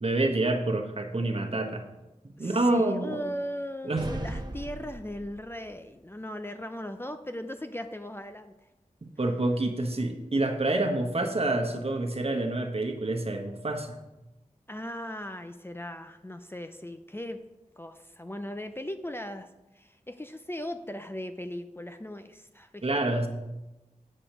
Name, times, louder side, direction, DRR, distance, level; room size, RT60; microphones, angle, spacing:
voice 1, 0.0-1.8 2.4-3.2 3.8-4.0 9.2-14.0 22.8-23.3, right 2 dB, 45° right, 3 dB, 1.3 m, -27 dB
voice 2, 2.4-8.6 14.7-17.4 17.8-19.5 19.7-23.3, left 1 dB, 15° left, 8 dB, 0.6 m, -38 dB
sound 1, 4.0-5.6, right 2 dB, 30° right, 1.0 m, -37 dB
8.8 x 5.0 x 6.0 m, 1.0 s
cardioid pair, 45°, 14 cm